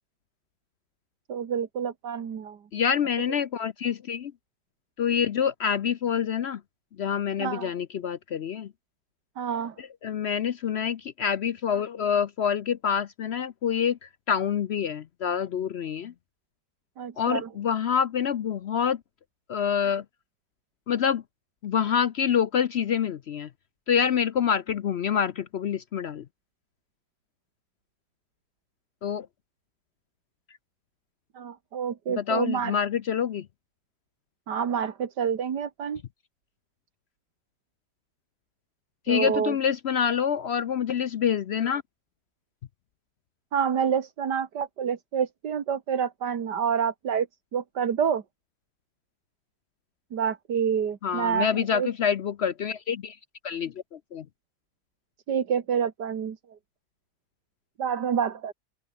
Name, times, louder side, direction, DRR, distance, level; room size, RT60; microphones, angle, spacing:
voice 1, 1.3-2.6 7.4-7.7 9.4-9.8 17.0-17.5 31.4-32.8 34.5-36.0 39.1-39.6 43.5-47.3 47.5-48.2 50.1-51.9 55.3-56.4 57.8-58.5, right 7 dB, 85° right, 2.2 m, -28 dB
voice 2, 2.7-4.3 5.0-6.6 7.0-8.7 9.8-16.1 17.2-19.0 19.5-20.0 20.9-21.2 21.6-23.5 23.9-26.2 29.0-29.3 32.2-33.5 39.1-41.8 51.0-53.2 53.4-54.3, left 8 dB, 65° left, 0.6 m, -26 dB
open air
omnidirectional pair, 1.8 m